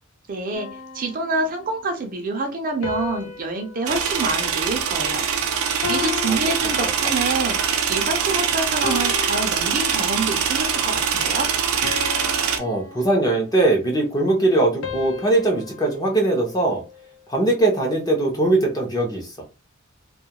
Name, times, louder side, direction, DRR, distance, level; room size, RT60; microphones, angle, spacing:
voice 1, 0.3-5.3 5.9-11.5, right 3 dB, 40° right, 4 dB, 0.5 m, -27 dB
sound 1, 0.5-1.8 2.8-5.3 5.8-7.5 8.1-8.4 8.8-10.4 10.8-11.1 11.8-13.7 14.8-17.2, left 6 dB, 65° left, 0.5 m, -35 dB
sound 2, 3.9-12.6, right 7 dB, 90° right, 0.5 m, -23 dB
voice 2, 12.6-16.8 17.3-19.3, right 2 dB, 20° left, 0 dB, 0.7 m, -21 dB
2.3 x 2.2 x 2.9 m, 0.29 s
head